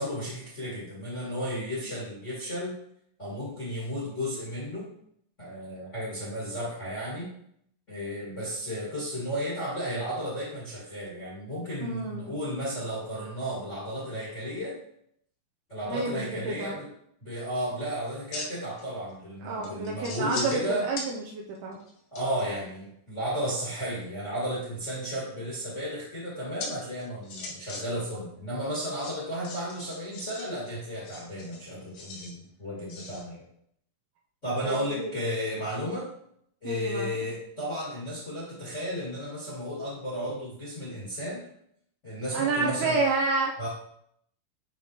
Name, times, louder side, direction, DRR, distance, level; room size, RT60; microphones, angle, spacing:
voice 1, 0.0-2.7 3.2-4.9 5.4-7.3 7.9-14.8 15.7-16.9 17.2-20.9 22.1-33.5 34.4-36.1 36.6-41.4 42.0-43.0 43.6-43.7, equal, 30° left, -7 dB, 1.3 m, -33 dB
voice 2, 11.8-12.3 15.9-16.8 19.4-21.8 34.6-35.1 36.6-37.3 42.3-43.5, right 3 dB, 75° right, -1 dB, 2.5 m, -30 dB
sound 1, 17.4-17.6 18.1-18.8 19.1-19.2 19.6-20.6 20.9-21.1 21.6-22.4 24.6-25.1 26.6-26.7 27.0-27.8 28.1-28.2 29.0-30.4 30.9-32.3 32.9-33.2, left 3 dB, 60° left, 2.2 m, -39 dB
11.0 x 3.7 x 3.1 m, 0.70 s
omnidirectional pair, 5.0 m